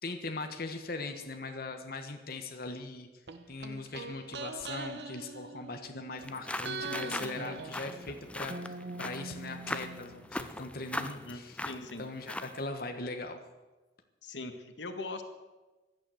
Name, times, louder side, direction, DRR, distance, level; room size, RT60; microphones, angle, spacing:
voice 1, 0.0-3.1 3.5-11.6 12.0-13.4, left 3 dB, 55° left, 6 dB, 1.5 m, -40 dB
sound 1, 3.3-6.2 6.6-10.5 10.7-10.8, right 3 dB, 70° right, 1.3 m, -42 dB
sound 2, 6.2-12.7, left 1 dB, 5° left, 0.7 m, -40 dB
voice 2, 11.1-12.0 14.2-15.2, left 3 dB, 90° left, 7 dB, 1.6 m, -41 dB
16.0 x 11.5 x 7.9 m, 1.2 s
head